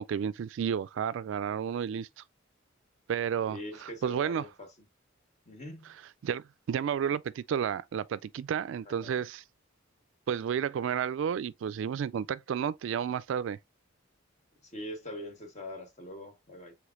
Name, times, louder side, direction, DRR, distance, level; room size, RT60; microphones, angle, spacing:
voice 1, 0.0-2.1 3.1-4.4 6.2-9.4 10.3-13.6, right 8 dB, 70° right, 0.3 m, -31 dB
voice 2, 3.5-4.7 5.5-5.9 8.8-9.1 14.6-16.7, left 1 dB, 35° left, 1.2 m, -43 dB
4.9 x 3.5 x 2.5 m
head